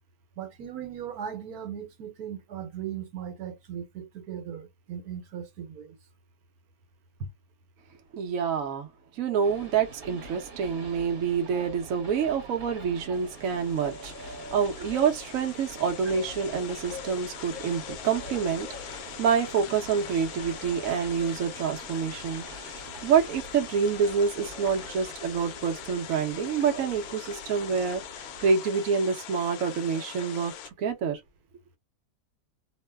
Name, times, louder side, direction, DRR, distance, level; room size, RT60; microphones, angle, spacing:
voice 1, 0.4-6.0 11.5-11.6 26.7-26.9, right 9 dB, 85° right, 1.4 m, -38 dB
voice 2, 8.1-8.9 9.2-30.5 30.8-31.2, right 6 dB, 65° right, 1.1 m, -27 dB
Train, 9.4-28.5, right 2 dB, 45° right, 1.3 m, -46 dB
sound 1, 13.1-30.7, left 9 dB, 80° left, 1.0 m, -42 dB
3.0 x 2.1 x 3.3 m
omnidirectional pair, 1.6 m